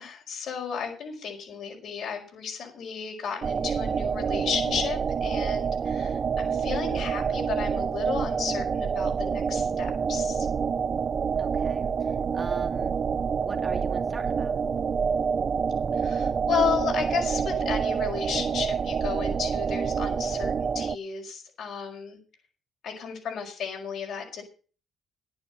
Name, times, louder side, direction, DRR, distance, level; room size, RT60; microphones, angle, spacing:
voice 1, 0.0-10.5 16.0-22.2 22.8-24.4, left 6 dB, 70° left, 0 dB, 5.0 m, -33 dB
sound 1, 3.4-21.0, right 6 dB, 45° right, 0.5 m, -27 dB
voice 2, 11.4-13.0 13.3-14.6, right 3 dB, 30° right, 4 dB, 2.4 m, -41 dB
10.5 x 9.3 x 6.3 m, 0.39 s
cardioid pair, 90°, 0 cm